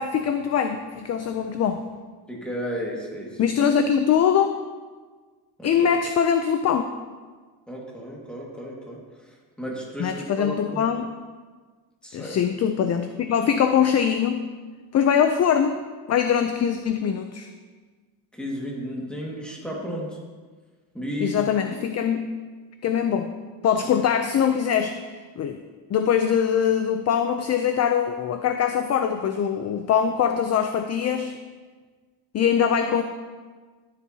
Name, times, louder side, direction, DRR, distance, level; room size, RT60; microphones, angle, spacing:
voice 1, 0.0-1.8 3.4-4.5 5.6-6.8 10.0-11.1 12.1-14.4 14.9-15.8 16.1-17.5 21.2-22.3 22.8-23.3 23.6-24.9 25.4-25.6 25.9-31.3 32.3-33.0, left 8 dB, 40° left, 7 dB, 0.4 m, -22 dB
voice 2, 2.3-3.5 5.6-5.7 7.7-10.8 12.0-12.4 18.3-20.2 20.9-21.4, equal, ahead, -3 dB, 1.8 m, -33 dB
14.0 x 7.6 x 2.8 m, 1.4 s
cardioid pair, 140°, 43 cm